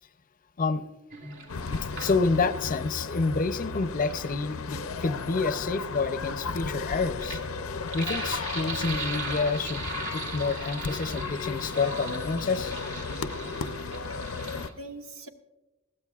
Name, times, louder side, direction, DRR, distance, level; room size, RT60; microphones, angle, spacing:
Sink (filling or washing), 1.1-2.6 3.8-14.7, right 3 dB, 60° right, 1.9 m, -39 dB
sound 1, 1.5-14.7, left 4 dB, 85° left, 0.6 m, -35 dB
voice 1, 1.9-7.4 7.9-12.7, left 4 dB, 40° left, 12 dB, 0.6 m, -28 dB
voice 2, 13.8-14.3 14.6-15.3, right 2 dB, 75° right, 5 dB, 1.2 m, -44 dB
21.0 x 15.0 x 2.4 m, 1.1 s
head